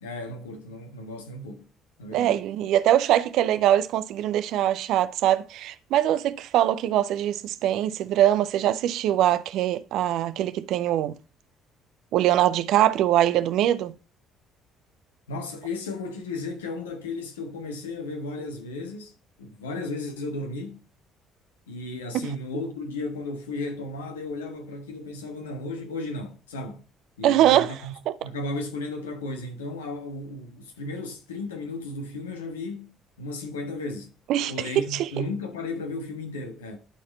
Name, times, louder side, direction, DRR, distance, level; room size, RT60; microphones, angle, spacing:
voice 1, 0.0-1.7 2.0-2.4 15.3-20.8 21.7-26.8 27.2-27.9 28.2-34.1 34.5-36.8, left 2 dB, 80° left, 1.3 m, -34 dB
voice 2, 2.1-11.1 12.1-13.9 27.2-27.7 34.3-35.1, right 12 dB, 60° right, 0.5 m, -22 dB
11.5 x 4.2 x 4.0 m
figure-of-eight pair, 50°, 0 cm